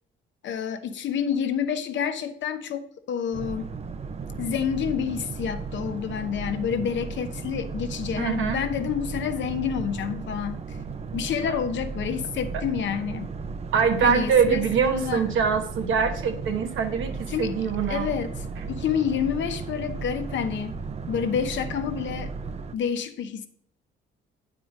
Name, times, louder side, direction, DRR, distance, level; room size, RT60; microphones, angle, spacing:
voice 1, 0.4-3.7 4.4-10.8 11.1-13.3 14.0-15.2 17.3-17.5 17.9-20.7 21.1-22.3 22.7-23.5, left 8 dB, 70° left, 8 dB, 0.9 m, -28 dB
Boat Water vehicle, 3.3-22.8, right 4 dB, 35° right, 0.6 m, -35 dB
voice 2, 8.2-8.6 13.7-18.1, right 6 dB, 80° right, 6 dB, 1.2 m, -23 dB
8.6 x 4.6 x 5.2 m, 0.66 s
cardioid pair, 90°, 20 cm